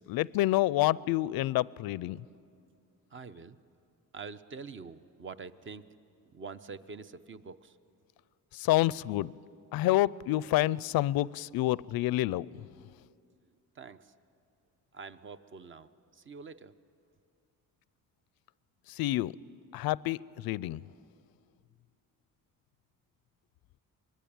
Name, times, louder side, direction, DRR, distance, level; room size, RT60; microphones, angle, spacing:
voice 1, 0.1-2.2 8.6-9.3 9.7-12.5 19.0-19.3 19.7-20.2 20.4-20.8, left 16 dB, 85° left, 22 dB, 0.5 m, -28 dB
voice 2, 3.1-3.6 4.1-5.8 6.3-7.7 13.8-14.0 14.9-15.9 16.3-16.7, right 5 dB, 35° right, 13 dB, 0.8 m, -45 dB
24.5 x 21.5 x 8.8 m, 2.4 s
cardioid pair, 135°, 35 cm